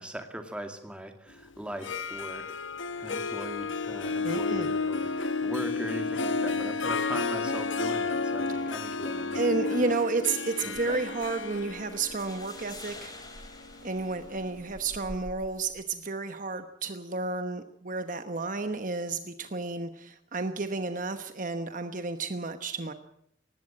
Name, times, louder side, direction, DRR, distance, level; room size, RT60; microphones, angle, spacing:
voice 1, 0.0-2.5 3.0-9.8 10.6-11.0, right 1 dB, 5° right, 5 dB, 2.3 m, -40 dB
Harp, 1.7-14.6, left 4 dB, 75° left, 1.1 m, -32 dB
voice 2, 4.2-4.7 9.3-13.1 13.8-22.9, right 3 dB, 40° right, 9 dB, 1.1 m, -31 dB
Rattle (instrument), 10.7-16.1, equal, 90° right, 2.8 m, -50 dB
sound 1, 11.9-14.9, left 3 dB, 20° left, 4.2 m, -48 dB
19.5 x 15.5 x 8.8 m, 0.72 s
head